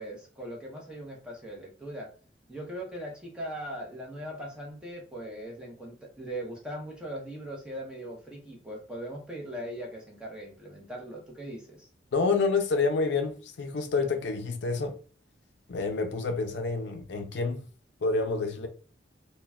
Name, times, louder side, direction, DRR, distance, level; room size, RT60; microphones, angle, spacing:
voice 1, 0.0-2.1 2.5-11.9, right 1 dB, 5° right, 0.7 m, -40 dB
voice 2, 12.1-14.9 15.7-17.6 18.0-18.7, left 4 dB, 65° left, 0.4 m, -28 dB
3.8 x 2.1 x 2.3 m
head